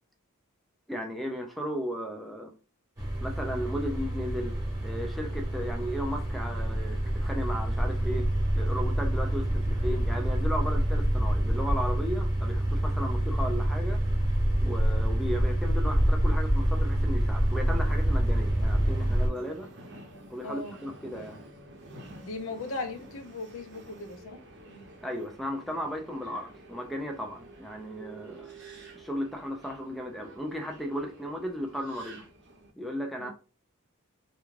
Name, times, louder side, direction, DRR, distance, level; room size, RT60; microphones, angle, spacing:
voice 1, 0.9-2.5 3.2-4.5 4.8-8.3 8.6-14.0 14.6-19.7 20.3-21.4 25.0-28.5 28.9-32.3 32.8-33.3, equal, ahead, 0.4 m, -35 dB
sound 1, 3.0-19.3, right 1 dB, 15° right, 1.0 m, -27 dB
Subway metro underground, 17.4-32.7, right 2 dB, 55° right, 0.7 m, -49 dB
voice 2, 20.4-20.8 22.2-24.4 24.7-24.9 33.2-33.3, left 3 dB, 65° left, 0.6 m, -38 dB
2.4 x 2.2 x 3.1 m
head